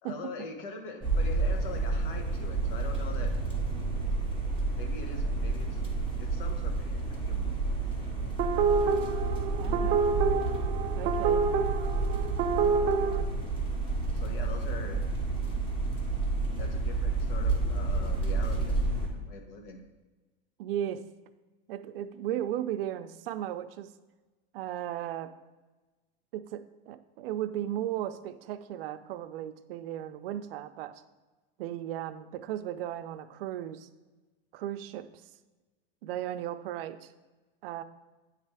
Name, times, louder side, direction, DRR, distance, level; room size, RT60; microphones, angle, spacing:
voice 1, 0.0-3.3 4.8-5.8 6.2-7.6 7.9-9.0 12.6-13.0 14.1-15.0 16.6-19.8, left 4 dB, 65° left, 4 dB, 1.2 m, -44 dB
sound 1, 1.0-19.1, right 3 dB, 15° left, 1.1 m, -30 dB
sound 2, 8.4-13.2, right 5 dB, 30° right, 0.3 m, -27 dB
voice 2, 9.6-10.0 10.9-11.5 20.6-21.0 21.7-23.9 24.5-25.3 26.3-31.0 31.6-33.9 34.5-35.3 36.0-37.1 37.6-37.8, right 11 dB, 75° right, 10 dB, 0.5 m, -36 dB
8.9 x 3.3 x 4.8 m, 1.2 s
supercardioid pair, 155°, 29 cm